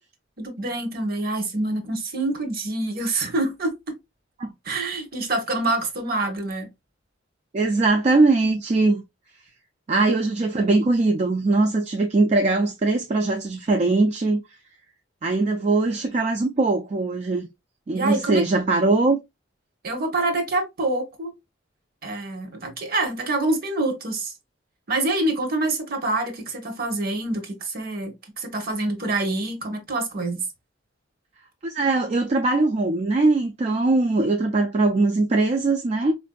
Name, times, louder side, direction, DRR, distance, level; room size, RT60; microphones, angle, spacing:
voice 1, 0.4-4.0 4.6-6.7 17.9-18.4 19.8-21.3 22.0-24.3 24.9-30.4, right 2 dB, 50° right, 0.9 m, -26 dB
voice 2, 7.5-9.0 9.9-14.4 15.2-17.5 17.9-19.2 31.6-36.1, right 3 dB, 35° right, 0.3 m, -21 dB
4.4 x 2.5 x 2.2 m
head